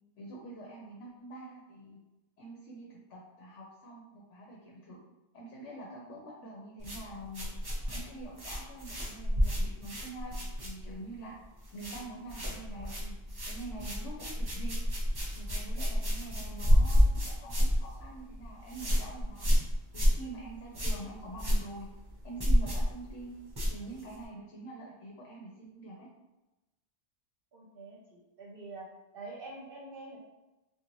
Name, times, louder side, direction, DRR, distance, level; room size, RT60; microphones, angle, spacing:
voice 1, 0.2-2.0 2.4-5.0 5.3-7.5 7.9-11.3 11.7-13.2 13.5-14.8 15.3-19.5 19.9-21.9 22.2-23.3 23.7-26.1, right 2 dB, 80° left, -2 dB, 1.0 m, -45 dB
sound 1, 6.8-11.1 11.4-12.0 12.3-24.2, equal, 25° right, 0.7 m, -29 dB
voice 2, 27.5-28.9 29.1-30.2, right 3 dB, 60° right, -4 dB, 0.8 m, -46 dB
3.9 x 2.4 x 3.0 m, 1.0 s
omnidirectional pair, 1.2 m